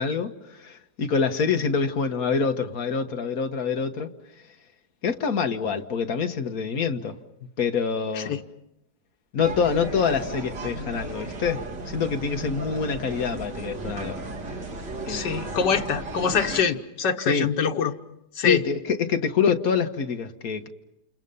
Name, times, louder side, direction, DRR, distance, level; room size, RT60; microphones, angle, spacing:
voice 1, 0.0-4.1 5.0-7.1 7.6-8.4 9.3-14.2 15.1-15.6 17.3-17.5 18.4-20.7, left 6 dB, 60° left, 6 dB, 1.7 m, -26 dB
sound 1, 9.4-16.6, right 2 dB, 85° right, 2.7 m, -35 dB
voice 2, 15.1-17.9 18.4-18.6, left 6 dB, 90° left, 6 dB, 1.8 m, -24 dB
29.5 x 28.5 x 5.5 m, 0.86 s
omnidirectional pair, 1.8 m